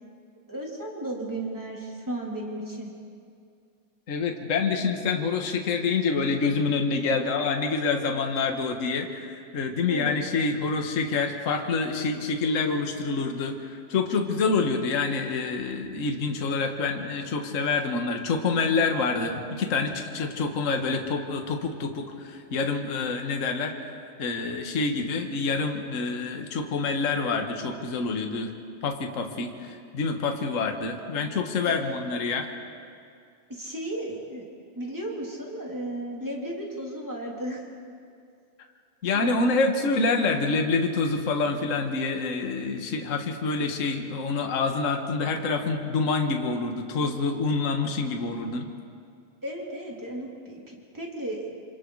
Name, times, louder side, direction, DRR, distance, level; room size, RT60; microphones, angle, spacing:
voice 1, 0.5-2.9 9.9-10.1 31.6-31.9 33.5-34.5 34.7-37.7 39.1-39.3 49.4-51.5, right 1 dB, 5° right, -2 dB, 2.8 m, -34 dB
voice 2, 4.1-23.9 24.2-28.5 28.8-32.5 39.0-48.7, left 4 dB, 40° left, 3 dB, 1.1 m, -27 dB
27.5 x 26.5 x 4.8 m, 2.3 s
omnidirectional pair, 3.7 m